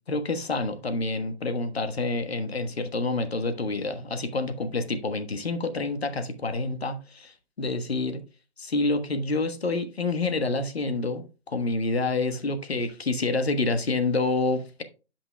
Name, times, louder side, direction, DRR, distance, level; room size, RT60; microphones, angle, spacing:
voice 1, 0.1-8.2 8.6-14.8, left 3 dB, 70° left, 1.3 m, -28 dB
11.0 x 6.0 x 2.3 m
figure-of-eight pair, 155°, 33 cm